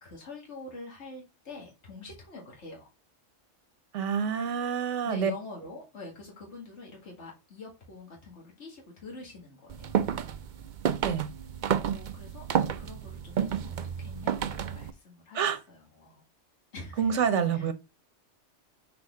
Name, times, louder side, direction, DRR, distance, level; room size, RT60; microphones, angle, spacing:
voice 1, 0.0-2.9 5.0-10.0 11.8-16.2 16.7-17.1 17.5-17.7, left 3 dB, 70° left, 2.2 m, -45 dB
voice 2, 3.9-5.3 11.0-11.3 15.3-15.6 17.0-17.7, right 7 dB, 75° right, 1.2 m, -27 dB
sound 1, 9.7-14.9, right 8 dB, 55° right, 0.6 m, -30 dB
6.1 x 4.7 x 3.6 m
omnidirectional pair, 1.2 m